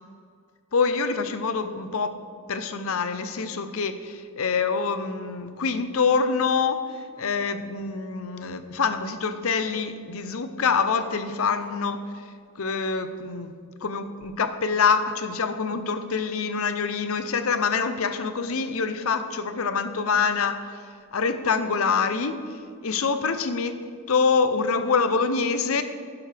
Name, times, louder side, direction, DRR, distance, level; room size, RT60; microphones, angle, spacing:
voice 1, 0.7-2.2 2.5-6.8 7.2-12.0 12.6-13.5 13.8-20.6 21.1-22.4 22.8-25.8, left 5 dB, 70° left, 10 dB, 0.7 m, -25 dB
11.0 x 10.5 x 3.4 m, 2.2 s
head